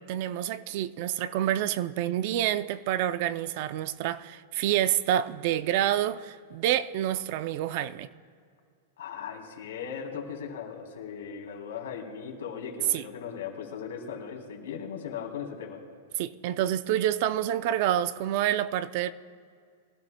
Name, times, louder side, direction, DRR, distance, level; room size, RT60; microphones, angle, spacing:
voice 1, 0.0-8.1 12.9-13.1 16.2-19.1, right 11 dB, 40° right, 0.4 m, -28 dB
voice 2, 9.0-15.8, left 7 dB, 85° left, 3.2 m, -38 dB
23.0 x 16.0 x 2.2 m
supercardioid pair, 170°, 0 cm